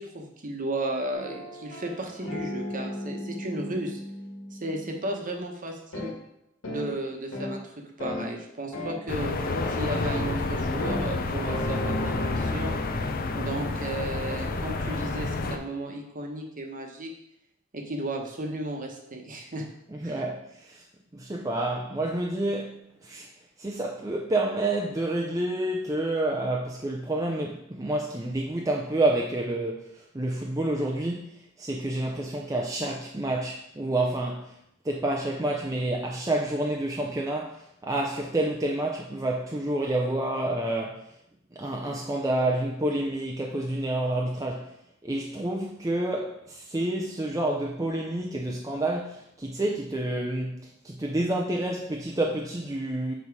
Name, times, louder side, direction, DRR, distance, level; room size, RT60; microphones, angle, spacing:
voice 1, 0.0-4.0 4.5-6.1 6.7-7.6 8.0-12.7 13.3-17.1 17.7-19.7 20.0-20.2, right 1 dB, 40° right, 3 dB, 1.1 m, -34 dB
sound 1, 1.1-5.1 5.9-6.1 6.6-6.9 7.3-7.6 8.0-8.3 8.7-9.0 9.5-9.7 10.1-10.4 10.8-11.1 11.5-13.9, left 1 dB, 80° left, 1.7 m, -36 dB
sound 2, 9.1-15.6, left 3 dB, 45° left, 0.6 m, -29 dB
voice 2, 19.9-20.8 21.1-23.3 23.6-31.3 31.6-34.5 34.8-41.1 41.5-44.7 45.0-53.1, right 1 dB, 15° right, -1 dB, 0.5 m, -29 dB
7.0 x 4.1 x 4.7 m, 0.77 s
head